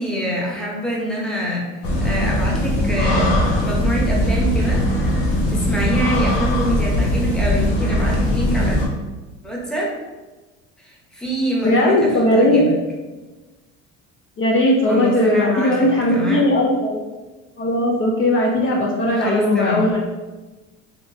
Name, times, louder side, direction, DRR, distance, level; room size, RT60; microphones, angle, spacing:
voice 1, 0.0-1.7 2.0-4.8 5.5-8.8 9.4-9.9 10.8-12.8 14.8-16.5 19.0-19.9, equal, ahead, -3 dB, 0.9 m, -25 dB
sound 1, 1.8-8.9, left 1 dB, 90° left, 0.9 m, -20 dB
voice 2, 11.6-12.7 14.4-17.0 17.6-20.0, left 1 dB, 40° left, -3 dB, 0.6 m, -18 dB
3.2 x 2.9 x 2.7 m, 1.2 s
supercardioid pair, 90°, 32 cm